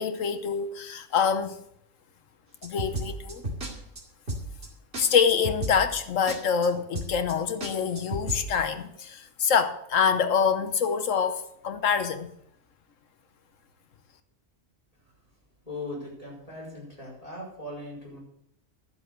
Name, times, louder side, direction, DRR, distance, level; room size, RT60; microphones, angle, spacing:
voice 1, 0.0-1.6 2.6-3.4 5.0-12.3, left 6 dB, 85° left, 1.4 m, -25 dB
sound 1, 2.6-3.7 4.0-4.1 4.3-4.7 4.9-5.0 5.3-6.0 6.3-6.4 6.6-6.7 6.9-7.3 7.6-8.4, right 1 dB, 55° right, 2.6 m, -33 dB
voice 2, 15.6-18.2, left 2 dB, 30° left, 5.1 m, -39 dB
12.5 x 7.7 x 6.5 m
omnidirectional pair, 1.3 m